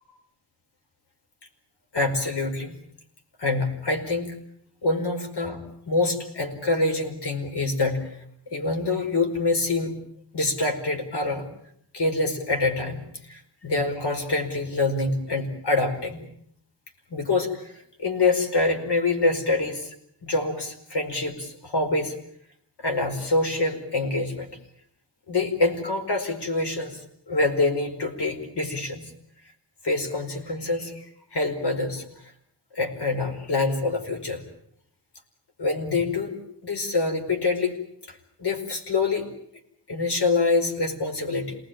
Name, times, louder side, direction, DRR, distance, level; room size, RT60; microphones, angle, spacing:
voice 1, 1.9-2.8 3.4-4.4 4.8-8.1 8.5-10.0 10.3-11.5 11.9-16.3 17.1-20.0 20.2-22.2 22.8-24.5 25.3-27.0 27.3-29.1 29.8-31.0 31.3-32.3 32.7-34.4 35.6-37.7 38.1-39.3 39.9-41.6, left 3 dB, 65° left, 4 dB, 5.0 m, -26 dB
27.5 x 19.5 x 9.1 m, 0.71 s
wide cardioid pair, 145°, 43 cm